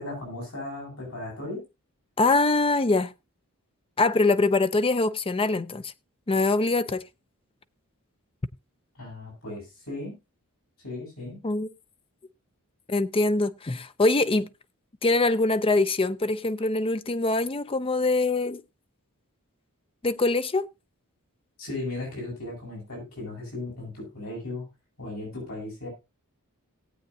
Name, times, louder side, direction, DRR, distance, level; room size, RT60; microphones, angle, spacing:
voice 1, 0.0-1.6 8.9-10.1 10.8-11.4 21.6-24.7 25.0-25.9, left 2 dB, 70° left, 8.0 m, -36 dB
voice 2, 2.2-3.1 4.0-5.9 6.3-7.0 11.4-11.7 12.9-14.5 15.0-18.6 20.0-20.7, left 2 dB, 25° left, 0.5 m, -23 dB
18.0 x 8.3 x 2.7 m
head